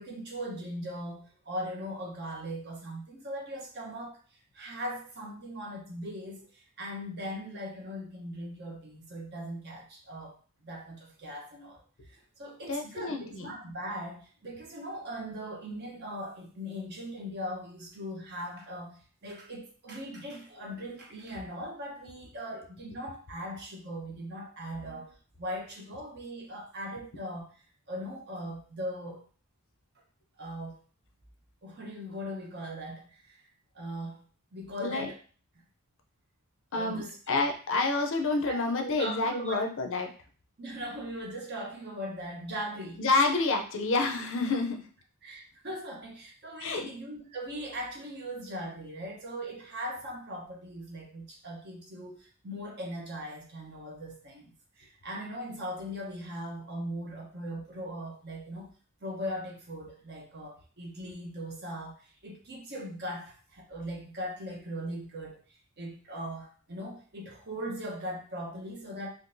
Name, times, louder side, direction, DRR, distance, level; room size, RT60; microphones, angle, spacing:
voice 1, 0.0-4.2 4.5-10.4 10.6-11.8 12.1-27.6 27.9-29.2 30.4-30.8 31.6-33.4 33.7-34.2 34.5-35.2 36.7-37.2 38.4-39.6 40.6-43.1 45.2-54.5 54.8-58.7 59.0-69.1, equal, 50° right, 0 dB, 0.9 m, -39 dB
voice 2, 12.7-13.6 34.8-35.1 36.7-40.1 43.0-44.8 46.6-46.9, left 3 dB, 60° left, 4 dB, 0.5 m, -28 dB
3.7 x 2.5 x 2.6 m, 0.39 s
head